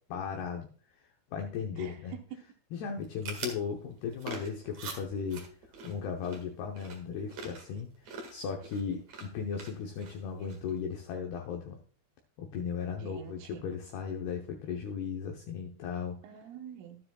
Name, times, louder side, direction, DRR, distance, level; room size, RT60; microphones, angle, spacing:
voice 1, 0.1-0.7 1.3-2.1 2.7-5.5 5.8-7.9 8.3-11.8 12.4-16.2, left 6 dB, 75° left, 2 dB, 2.3 m, -36 dB
voice 2, 1.7-2.4 13.0-13.6 16.2-17.0, right 9 dB, 80° right, 4 dB, 3.7 m, -46 dB
sound 1, 2.9-10.8, right 4 dB, 55° right, 2.2 m, -46 dB
12.5 x 9.7 x 2.3 m, 0.43 s
omnidirectional pair, 5.9 m